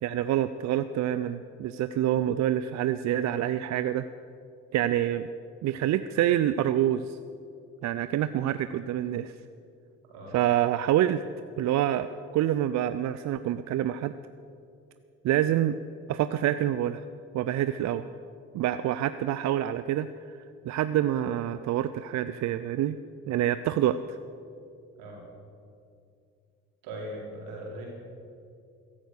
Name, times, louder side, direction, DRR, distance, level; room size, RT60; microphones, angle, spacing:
voice 1, 0.0-4.0 4.7-5.3 5.6-7.2 7.8-9.3 10.3-11.2 11.6-12.1 12.3-14.1 15.2-15.8 16.1-17.0 17.3-18.1 18.5-20.1 20.7-23.0 23.3-24.2, right 12 dB, 55° right, 12 dB, 0.6 m, -26 dB
voice 2, 26.8-27.9, right 1 dB, 75° right, -3 dB, 4.5 m, -39 dB
14.5 x 11.5 x 6.5 m, 2.5 s
hypercardioid pair, 60°, 34 cm